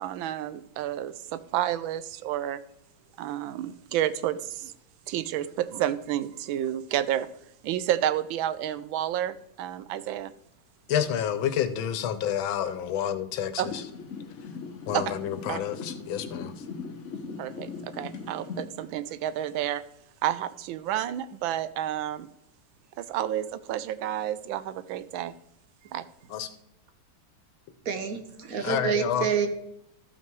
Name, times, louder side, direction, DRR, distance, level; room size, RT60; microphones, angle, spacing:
voice 1, 0.0-2.6 3.2-4.7 5.1-7.3 7.6-10.3 13.6-13.7 14.9-15.1 15.5-15.6 17.4-19.8 20.2-22.3 23.0-25.3 25.9-26.0, right 11 dB, 85° right, 15 dB, 1.4 m, -30 dB
voice 2, 10.9-13.8 14.9-16.5 26.3-26.5 28.6-29.3, left 9 dB, 90° left, 11 dB, 1.6 m, -29 dB
sound 1, 13.6-18.6, left 5 dB, 45° left, 1.2 m, -39 dB
voice 3, 27.9-29.5, right 7 dB, 55° right, 7 dB, 1.2 m, -28 dB
13.0 x 5.8 x 4.6 m, 0.78 s
omnidirectional pair, 2.1 m